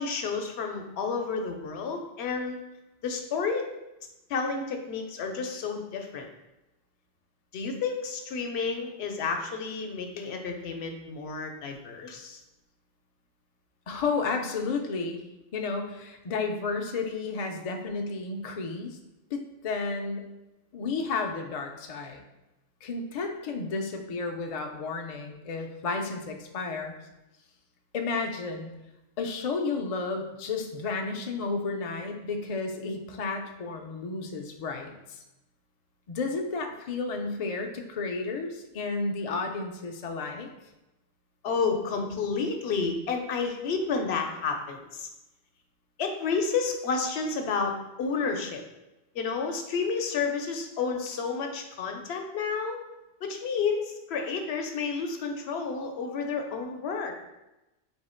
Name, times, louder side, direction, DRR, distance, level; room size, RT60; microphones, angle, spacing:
voice 1, 0.0-2.6 3.0-3.7 4.3-6.3 7.5-12.4 41.4-45.1 46.0-48.6 49.1-52.8 53.2-57.1, left 5 dB, 75° left, 4 dB, 0.9 m, -30 dB
voice 2, 13.9-15.2 15.5-19.0 19.3-20.3 20.7-22.2 22.8-26.9 27.9-28.7 29.2-35.2 36.1-40.5, left 4 dB, 55° left, 3 dB, 0.4 m, -32 dB
3.6 x 2.7 x 4.2 m, 0.96 s
omnidirectional pair, 1.1 m